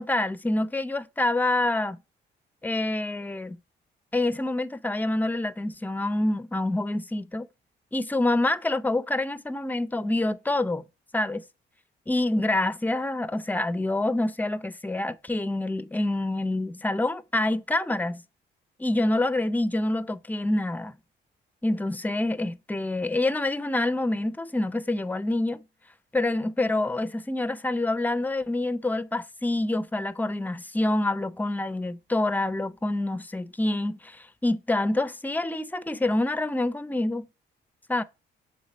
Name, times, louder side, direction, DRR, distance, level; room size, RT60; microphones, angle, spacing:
voice 1, 0.0-2.0 2.6-3.6 4.1-7.5 7.9-10.8 11.1-11.4 12.1-18.2 18.8-20.9 21.6-25.6 26.1-37.3 37.9-38.0, left 2 dB, 10° left, 0.5 m, -27 dB
7.3 x 3.6 x 4.3 m
cardioid pair, 90°, 20 cm